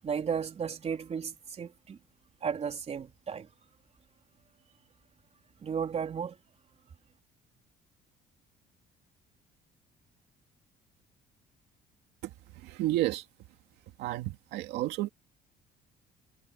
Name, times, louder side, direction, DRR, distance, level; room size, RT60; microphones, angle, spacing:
voice 1, 0.0-2.0 2.4-3.5 5.6-6.4, right 7 dB, 40° right, 4.0 m, -34 dB
voice 2, 12.2-13.3 14.0-15.1, right 16 dB, 90° right, 2.4 m, -32 dB
cardioid pair, 110°, 17 cm